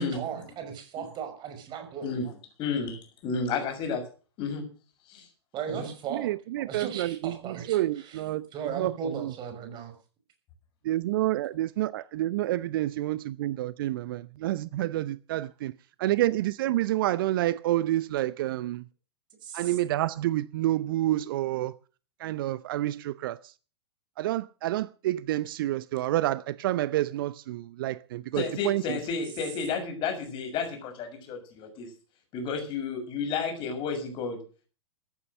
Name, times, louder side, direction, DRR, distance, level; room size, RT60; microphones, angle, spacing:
voice 1, 0.0-2.1 5.5-6.3 6.6-8.2 8.5-9.9 19.4-19.8, right 8 dB, 30° right, 5.9 m, -37 dB
voice 2, 2.6-4.0 4.4-4.6 5.1-5.3 5.7-5.9 28.3-31.9 32.3-34.4, left 5 dB, 35° left, 6.7 m, -31 dB
voice 3, 6.1-8.5 8.8-9.3 10.8-15.7 16.0-18.8 19.5-21.7 22.2-23.5 24.2-29.0, right 15 dB, 55° right, 0.7 m, -29 dB
14.5 x 11.0 x 6.6 m
figure-of-eight pair, 100°, 14 cm